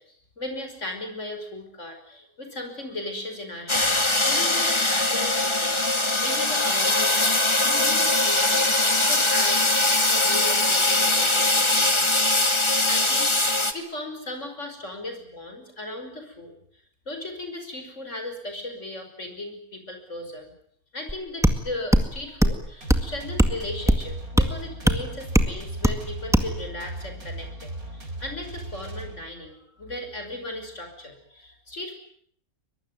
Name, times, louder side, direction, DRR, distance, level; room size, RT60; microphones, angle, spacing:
voice 1, 0.0-9.8 10.1-12.1 12.9-16.5 17.1-20.5 20.9-31.9, left 1 dB, 55° left, 6 dB, 5.9 m, -37 dB
sound 1, 3.7-13.7, left 2 dB, 20° left, 1.9 m, -21 dB
sound 2, 21.1-21.2 21.4-21.6 21.9-22.1 22.4-22.6 22.9-23.1 23.4-23.6 23.9-24.0 24.4-24.5 24.9-25.0 25.3-25.5 25.8-26.0 26.3-26.5, equal, ahead, 1.9 m, -19 dB
sound 3, 22.8-29.5, right 1 dB, 75° right, 4.7 m, -37 dB
23.0 x 23.0 x 9.5 m, 0.65 s
omnidirectional pair, 1.5 m